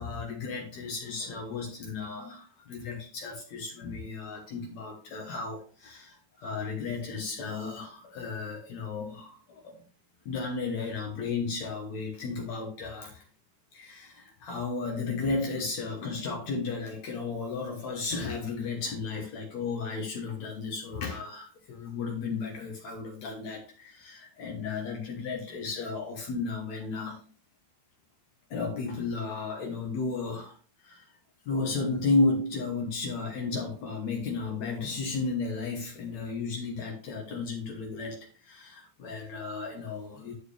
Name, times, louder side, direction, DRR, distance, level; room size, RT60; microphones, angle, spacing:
voice 1, 0.0-9.7 10.3-13.2 13.7-27.2 28.5-30.5 30.8-31.1 31.5-38.2 38.4-40.3, left 4 dB, 65° left, 1 dB, 2.4 m, -33 dB
11.5 x 4.6 x 3.3 m, 0.40 s
omnidirectional pair, 3.7 m